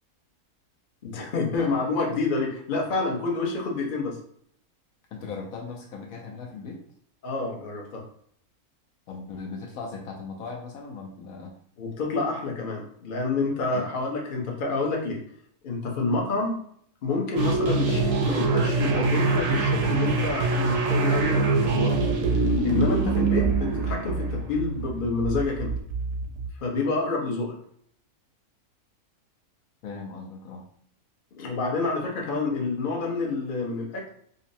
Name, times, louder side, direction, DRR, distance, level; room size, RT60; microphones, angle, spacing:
voice 1, 1.0-4.2 7.2-8.0 11.8-15.2 15.6-16.6 17.0-22.0 22.6-25.7 26.6-27.5 31.4-34.0, left 3 dB, 45° left, -1 dB, 0.8 m, -28 dB
voice 2, 5.1-6.8 9.1-11.5 13.7-13.9 29.8-30.6, left 4 dB, 70° left, 1 dB, 1.0 m, -38 dB
sound 1, 17.4-26.5, right 3 dB, 60° right, 0.9 m, -24 dB
5.2 x 2.0 x 2.7 m, 0.65 s
omnidirectional pair, 1.6 m